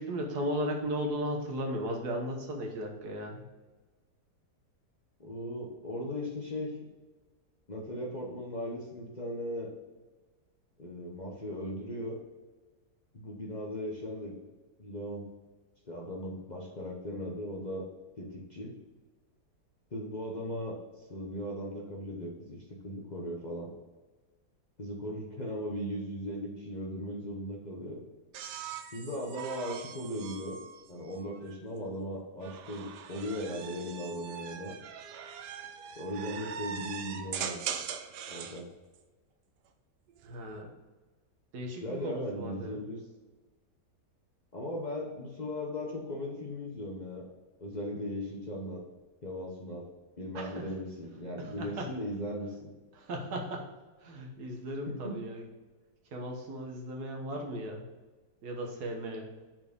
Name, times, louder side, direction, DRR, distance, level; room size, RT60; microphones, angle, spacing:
voice 1, 0.0-3.4 40.2-40.7 41.5-42.8 50.3-50.6 51.6-51.9 53.0-53.7 54.0-55.5 56.1-57.8 58.4-59.3, equal, 70° right, 1 dB, 1.7 m, -36 dB
voice 2, 5.2-6.7 7.7-9.7 10.8-12.2 13.1-14.3 14.8-15.3 15.8-17.9 18.2-18.8 19.9-23.7 24.8-28.0 28.9-30.6 30.9-34.7 36.0-37.6 38.3-38.7 41.8-43.0 44.5-47.3 47.6-48.8 49.2-49.9 50.2-52.7 54.9-55.2, equal, 35° left, -3 dB, 0.9 m, -38 dB
sound 1, 28.3-31.6 32.4-38.6 40.1-40.6, right 8 dB, 85° right, 1.2 m, -41 dB
6.0 x 4.5 x 5.2 m, 1.3 s
omnidirectional pair, 1.8 m